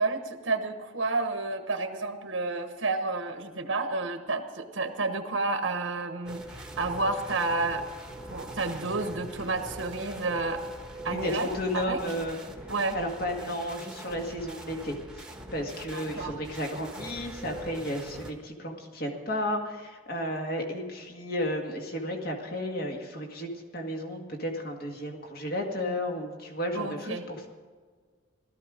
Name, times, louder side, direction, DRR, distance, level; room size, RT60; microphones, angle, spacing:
voice 1, 0.0-6.4 6.8-7.8 8.3-10.6 11.0-11.5 11.7-12.0 12.7-13.0 15.9-16.3 26.7-27.2, right 3 dB, 75° right, 7 dB, 1.1 m, -30 dB
sound 1, 6.2-18.3, right 1 dB, 5° right, 1.2 m, -42 dB
voice 2, 11.1-12.4 12.9-27.5, equal, 50° left, 2 dB, 2.0 m, -33 dB
16.5 x 13.5 x 5.0 m, 1.5 s
head